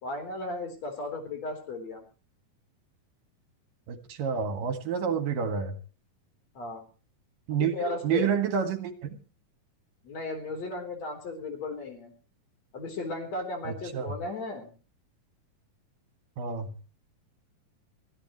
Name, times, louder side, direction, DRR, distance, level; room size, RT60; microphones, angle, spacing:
voice 1, 0.0-2.0 6.5-6.9 7.6-8.3 10.0-12.1 12.7-14.7, left 2 dB, 50° left, 5 dB, 5.0 m, -35 dB
voice 2, 3.9-5.8 7.5-9.2 13.9-14.2 16.4-16.7, right 7 dB, 80° right, 8 dB, 3.5 m, -29 dB
23.5 x 15.5 x 3.1 m, 0.37 s
omnidirectional pair, 3.9 m